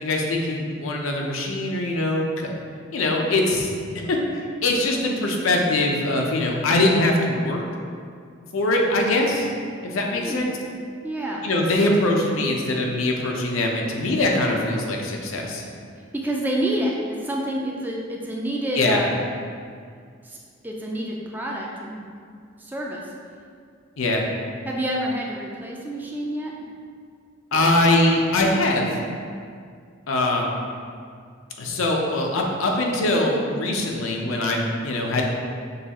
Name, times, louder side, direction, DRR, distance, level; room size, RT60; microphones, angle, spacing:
voice 1, 0.0-2.5 2.9-3.7 4.0-7.6 8.5-9.5 9.8-10.6 11.4-15.6 18.7-19.0 24.0-24.2 27.5-28.9 30.1-30.6 31.6-35.2, left 2 dB, 85° left, 0 dB, 0.6 m, -22 dB
voice 2, 10.1-10.5 11.0-11.5 16.1-19.1 20.2-20.4 20.6-22.1 22.6-23.1 24.6-26.5, right 1 dB, 10° right, -2 dB, 0.3 m, -28 dB
6.5 x 2.3 x 2.9 m, 2.2 s
head